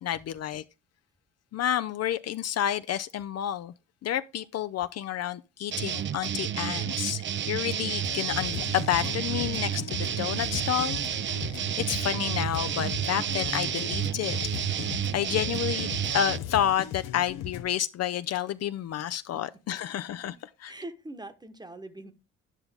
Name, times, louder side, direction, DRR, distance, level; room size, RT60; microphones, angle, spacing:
voice 1, 0.0-0.6 1.5-3.7 4.0-7.2 7.5-14.4 15.1-15.9 16.1-20.3 20.6-20.7, left 10 dB, 55° left, 0.4 m, -30 dB
sound 1, 5.7-16.4, right 9 dB, 40° right, 0.4 m, -31 dB
sound 2, 8.0-17.6, left 10 dB, 85° left, 0.8 m, -38 dB
voice 2, 20.6-22.1, right 1 dB, 15° right, 1.0 m, -42 dB
9.9 x 5.7 x 3.5 m
supercardioid pair, 70°, 31 cm